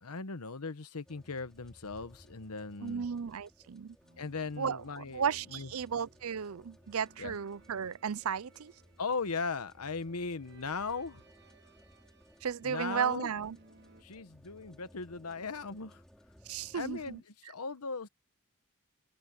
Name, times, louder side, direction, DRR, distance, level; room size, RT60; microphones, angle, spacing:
voice 1, 0.0-3.0 4.2-5.7 7.2-7.4 9.0-11.2 12.6-13.3 14.0-16.0 16.7-18.1, left 4 dB, 90° left, 1.1 m, -38 dB
sound 1, 1.1-17.2, equal, ahead, 5.7 m, -61 dB
voice 2, 2.8-4.0 4.6-8.7 12.4-13.6 16.5-17.2, right 7 dB, 70° right, 0.5 m, -34 dB
sound 2, 4.0-14.0, right 2 dB, 50° right, 2.1 m, -62 dB
open air
head